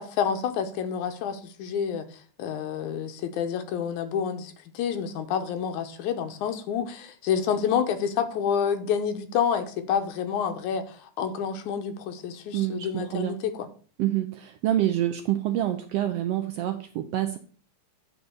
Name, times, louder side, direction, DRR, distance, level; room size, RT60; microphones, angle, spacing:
voice 1, 0.0-2.0 2.4-13.7, left 7 dB, 85° left, 2.4 m, -28 dB
voice 2, 12.5-13.4 14.0-17.4, right 13 dB, 80° right, 1.4 m, -27 dB
9.4 x 3.9 x 6.9 m
omnidirectional pair, 3.4 m